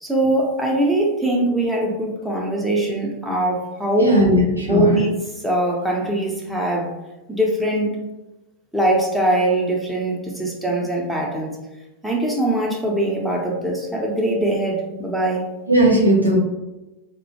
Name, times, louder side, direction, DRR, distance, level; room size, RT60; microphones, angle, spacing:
voice 1, 0.0-4.1 4.6-6.9 7.3-7.9 8.7-11.6 12.0-15.4, right 1 dB, ahead, -3 dB, 0.5 m, -22 dB
voice 2, 4.0-5.0 15.7-16.4, right 1 dB, 85° right, -3 dB, 0.7 m, -16 dB
2.3 x 2.1 x 2.8 m, 1.0 s
figure-of-eight pair, 90°, 0 cm